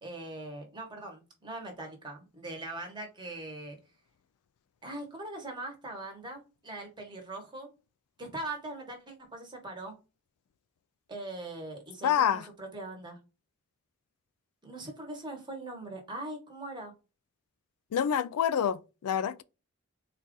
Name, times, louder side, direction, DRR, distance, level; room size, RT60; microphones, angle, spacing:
voice 1, 0.0-3.8 4.8-7.7 8.2-9.9 11.1-13.2 14.6-16.9, right 2 dB, 20° right, 1.1 m, -41 dB
voice 2, 12.0-12.5 17.9-19.4, left 8 dB, 85° left, 0.3 m, -27 dB
4.1 x 2.4 x 3.7 m
head